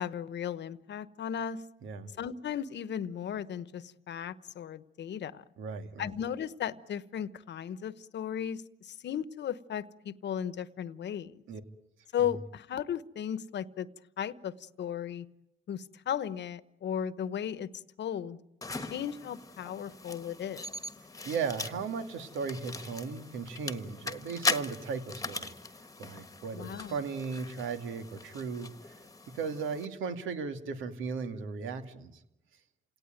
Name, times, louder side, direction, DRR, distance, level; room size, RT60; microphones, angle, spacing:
voice 1, 0.0-1.7 2.2-5.4 6.0-11.4 12.1-13.9 14.2-15.3 15.7-17.7 18.0-18.4 18.9-20.7 26.5-27.0, left 9 dB, 60° left, 16 dB, 1.1 m, -36 dB
voice 2, 5.6-6.1 11.5-11.6 21.3-25.5 26.0-29.0 29.3-32.1, right 5 dB, 80° right, 8 dB, 2.4 m, -36 dB
sound 1, 18.6-29.9, left 3 dB, 15° left, 1.5 m, -39 dB
28.0 x 18.0 x 9.2 m, 0.89 s
cardioid pair, 90°, 20 cm